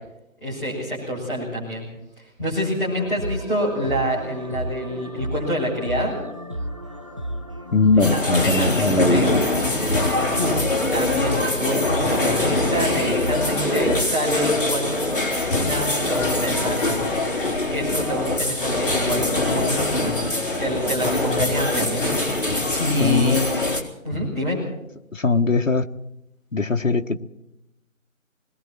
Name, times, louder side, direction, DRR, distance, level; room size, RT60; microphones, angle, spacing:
voice 1, 0.4-1.9 2.2-6.1 8.0-9.3 10.4-10.6 10.9-15.2 15.5-20.1 20.6-23.4 24.0-24.6, equal, 5° left, -16 dB, 5.8 m, -27 dB
sound 1, 3.0-14.0, right 1 dB, 25° right, 1.0 m, -33 dB
voice 2, 7.7-9.2 23.0-23.4 25.1-25.9 26.5-27.2, left 3 dB, 65° left, 7 dB, 1.5 m, -20 dB
sound 2, 8.0-23.8, left 2 dB, 40° left, 3.9 m, -23 dB
27.5 x 21.5 x 4.5 m, 0.86 s
figure-of-eight pair, 170°, 41 cm